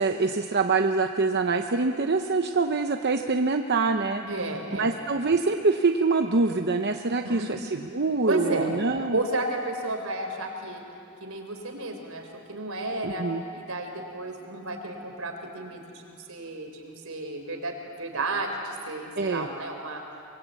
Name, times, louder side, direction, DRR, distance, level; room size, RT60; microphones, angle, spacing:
voice 1, 0.0-4.2 4.7-9.2 13.0-13.4 19.2-19.5, right 3 dB, 50° right, 5 dB, 0.8 m, -25 dB
voice 2, 4.2-4.9 7.2-7.5 8.3-8.7 9.1-10.8 11.2-13.2 13.5-20.0, right 2 dB, 75° right, 4 dB, 3.8 m, -32 dB
24.5 x 22.0 x 8.4 m, 2.6 s
head